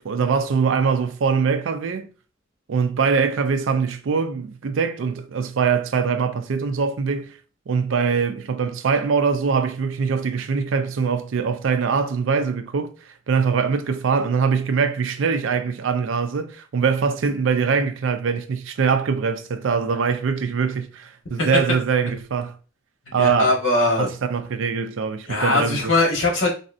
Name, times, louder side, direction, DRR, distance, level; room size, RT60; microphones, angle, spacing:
voice 1, 0.0-2.1 2.7-7.4 7.7-22.6 23.1-23.5 24.0-25.9, right 5 dB, 70° right, 0.4 m, -23 dB
voice 2, 23.2-24.1 25.3-26.5, left 2 dB, 70° left, 1.3 m, -20 dB
4.0 x 2.7 x 2.5 m
head